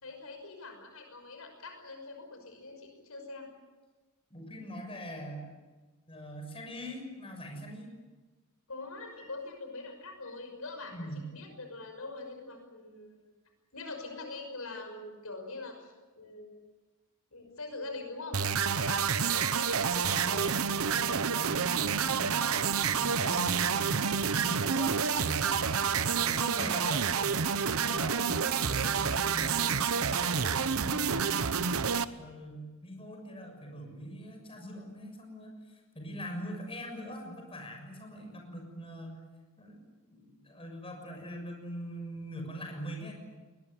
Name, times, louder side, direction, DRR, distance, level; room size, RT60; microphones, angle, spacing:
voice 1, 0.0-3.5 8.7-13.3 13.7-16.6 17.3-20.2 25.8-26.0 29.1-30.0, left 3 dB, 85° left, 4 dB, 5.9 m, -44 dB
voice 2, 4.3-5.6 6.1-7.9 10.9-11.2 20.1-25.7 26.2-27.1 27.8-31.8 32.1-39.2 39.6-39.8 40.1-43.1, equal, 25° left, 3 dB, 6.6 m, -42 dB
sound 1, 18.3-32.0, right 6 dB, 80° right, 1.0 m, -29 dB
21.5 x 21.0 x 9.6 m, 1.2 s
head